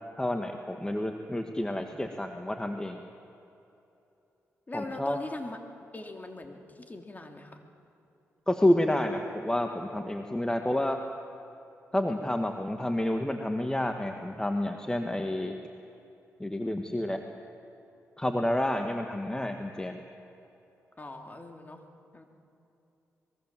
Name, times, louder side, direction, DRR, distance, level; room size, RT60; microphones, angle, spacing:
voice 1, 0.2-3.0 4.7-5.2 8.5-11.0 11.9-15.6 16.4-17.3 18.2-20.0, left 1 dB, 10° left, 5 dB, 1.6 m, -29 dB
voice 2, 4.7-5.6 5.9-7.6 8.6-8.7 21.0-21.8 22.1-22.2, left 2 dB, 30° left, 4 dB, 3.0 m, -41 dB
24.5 x 22.0 x 7.6 m, 2.9 s
cardioid pair, 60°, 6 cm